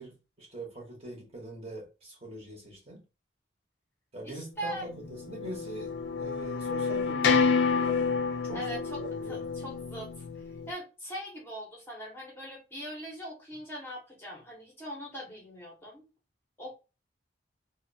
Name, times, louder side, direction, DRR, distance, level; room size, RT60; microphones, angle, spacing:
voice 1, 0.0-3.0 4.1-8.1 8.4-9.5, right 1 dB, 30° right, 0.8 m, -43 dB
voice 2, 4.2-4.9 8.5-9.0 9.3-16.0 16.6-16.7, equal, 10° left, 0.6 m, -41 dB
sound 1, 4.9-10.7, left 5 dB, 60° left, 0.3 m, -29 dB
2.6 x 2.0 x 2.5 m
head